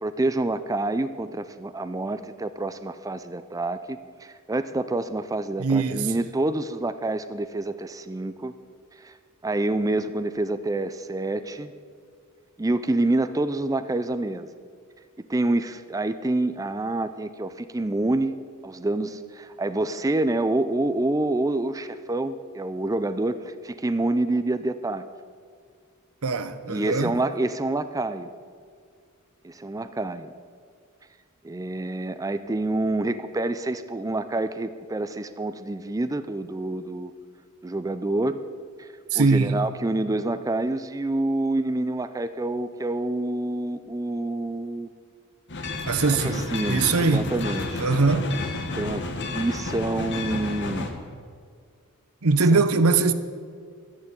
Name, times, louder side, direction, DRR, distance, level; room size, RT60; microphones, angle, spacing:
voice 1, 0.0-8.5 9.0-9.1 9.4-11.7 12.6-14.5 15.3-18.3 18.6-25.1 26.7-28.3 29.4-30.3 31.4-37.1 37.6-38.4 38.8-38.9 39.1-44.9 46.1-47.8 48.7-49.0 49.3-50.9 52.5-52.6, right 2 dB, 15° right, 0.4 m, -27 dB
voice 2, 5.6-6.1 26.2-27.1 39.1-39.6 45.9-47.3 47.8-48.3 52.2-53.1, right 4 dB, 85° right, 0.9 m, -22 dB
sound 1, 45.5-50.9, left 2 dB, 55° left, 1.5 m, -31 dB
12.0 x 10.5 x 8.8 m
head